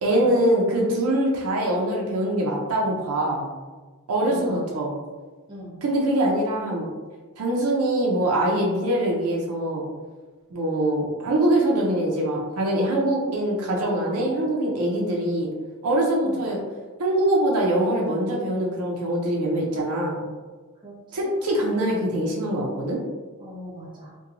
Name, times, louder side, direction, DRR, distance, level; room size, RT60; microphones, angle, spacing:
voice 1, 0.0-3.5 4.1-4.9 5.8-6.9 7.4-9.9 10.5-15.5 15.8-16.6 17.0-20.2 21.1-23.0, right 1 dB, 70° right, -2 dB, 0.5 m, -23 dB
voice 2, 4.2-4.6 5.5-5.8 16.2-16.4 20.8-21.3 23.4-24.1, equal, 20° right, -5 dB, 0.8 m, -39 dB
2.9 x 2.2 x 2.5 m, 1.3 s
head